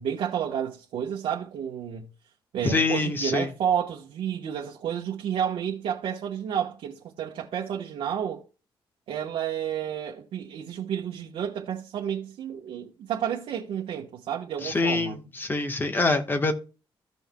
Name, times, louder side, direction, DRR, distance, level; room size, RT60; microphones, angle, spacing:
voice 1, 0.0-2.1 2.5-8.4 9.1-15.2, right 9 dB, 90° right, 1.1 m, -31 dB
voice 2, 2.6-3.5 14.6-16.5, left 3 dB, 25° left, 1.2 m, -25 dB
15.0 x 5.5 x 2.2 m
wide cardioid pair, 150°, 9 cm